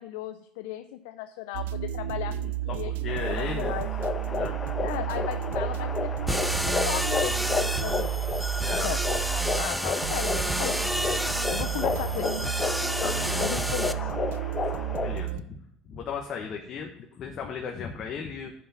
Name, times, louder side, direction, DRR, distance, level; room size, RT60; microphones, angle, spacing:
voice 1, 0.0-2.9 3.3-3.9 4.8-8.2 8.7-9.0 9.5-12.3 13.4-14.1, left 13 dB, 80° left, 9 dB, 0.5 m, -36 dB
sound 1, 1.5-15.4, right 12 dB, 85° right, 0.4 m, -32 dB
voice 2, 2.2-3.8 4.3-4.6 8.6-8.9 13.0-13.4 15.0-18.5, left 6 dB, 50° left, 2 dB, 1.3 m, -36 dB
sound 2, 3.1-15.2, left 4 dB, 30° left, 1.3 m, -32 dB
sound 3, 6.3-13.9, equal, ahead, 0.6 m, -31 dB
8.4 x 5.6 x 5.7 m, 0.73 s
supercardioid pair, 80°, 0 cm